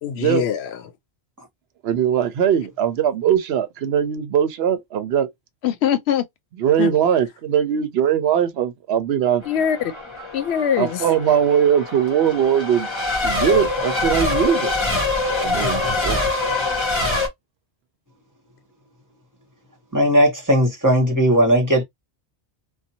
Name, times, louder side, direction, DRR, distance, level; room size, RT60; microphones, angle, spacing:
voice 1, 0.0-0.8 5.6-6.2 6.8-6.9 9.5-9.9 10.3-11.0, left 9 dB, 80° left, 0.8 m, -22 dB
voice 2, 1.8-5.3 6.6-9.4 10.8-12.9 13.2-14.7 15.4-16.2, right 9 dB, 75° right, 0.8 m, -20 dB
Race car auto racing / Accelerating revving vroom / Mechanisms, 9.4-17.3, left 2 dB, 25° left, 1.0 m, -24 dB
voice 3, 19.9-21.8, equal, 20° right, 1.1 m, -17 dB
2.6 x 2.2 x 2.7 m
omnidirectional pair, 1.1 m